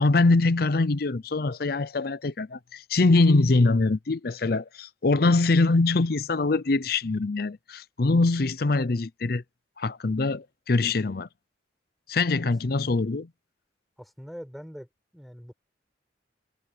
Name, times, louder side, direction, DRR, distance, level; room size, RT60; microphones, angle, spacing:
voice 1, 0.0-9.4 9.8-11.3 12.1-13.3, left 3 dB, 55° left, 0.6 m, -23 dB
voice 2, 14.0-14.9 15.1-15.5, equal, ahead, 5.6 m, -42 dB
head